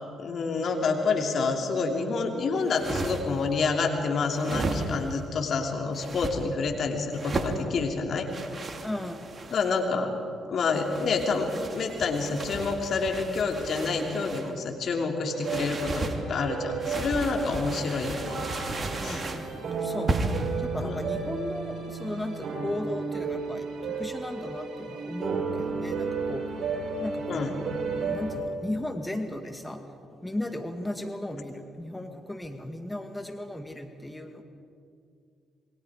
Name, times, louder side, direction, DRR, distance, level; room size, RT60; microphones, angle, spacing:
voice 1, 0.2-8.3 9.5-10.1 10.5-18.4 19.0-19.2 20.8-21.0 27.3-27.6, left 4 dB, 55° left, 3 dB, 2.8 m, -28 dB
sound 1, 2.6-3.4 4.3-5.2 5.9-6.4 7.1-7.6 8.3-9.8 10.7-14.5 15.4-16.2 16.8-19.5 20.1-20.5, right 2 dB, 35° right, 2.5 m, -34 dB
voice 2, 8.8-9.2 19.0-26.4 27.0-27.7 28.0-29.8 30.2-34.4, left 1 dB, 10° left, 6 dB, 2.0 m, -36 dB
sound 2, 15.2-28.4, right 4 dB, 55° right, 7.6 m, -33 dB
27.5 x 22.0 x 4.9 m, 2.4 s
hypercardioid pair, 45°, 0 cm